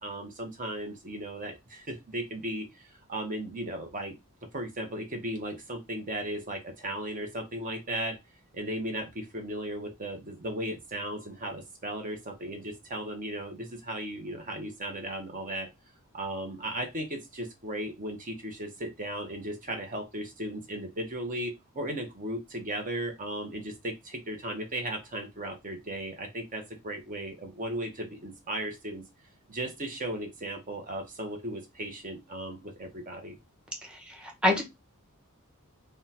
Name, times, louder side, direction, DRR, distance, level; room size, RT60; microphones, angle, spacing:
voice 1, 0.0-2.7 3.1-4.2 4.5-8.2 8.5-15.7 16.1-29.0 29.5-33.4, right 1 dB, 40° right, 3 dB, 0.8 m, -36 dB
voice 2, 33.9-34.6, left 1 dB, 5° right, 1 dB, 0.8 m, -27 dB
3.5 x 2.2 x 2.8 m, 0.21 s
head